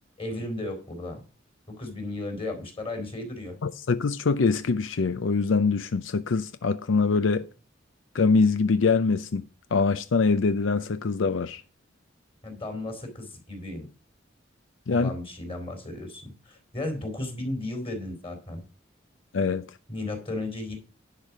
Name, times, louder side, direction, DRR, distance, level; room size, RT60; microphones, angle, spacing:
voice 1, 0.2-1.2 1.7-3.6 12.4-13.9 14.9-18.6 19.9-20.7, left 2 dB, 30° left, 4.0 m, -34 dB
voice 2, 3.6-7.5 8.1-11.6 14.9-15.1 19.3-19.7, left 4 dB, 90° left, 0.5 m, -24 dB
10.5 x 5.0 x 7.4 m
head